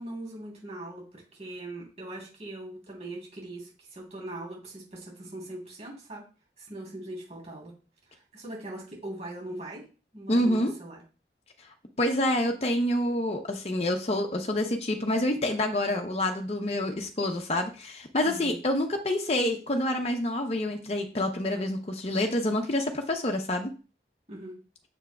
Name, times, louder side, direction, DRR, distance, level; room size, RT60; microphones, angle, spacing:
voice 1, 0.0-6.2 6.6-7.8 8.1-9.8 10.1-11.0 18.2-18.6 24.3-24.6, right 1 dB, 40° right, -2 dB, 3.2 m, -41 dB
voice 2, 10.3-10.7 11.6-11.7 12.0-23.7, left 1 dB, 35° left, 3 dB, 0.7 m, -27 dB
7.2 x 6.7 x 2.3 m, 0.35 s
head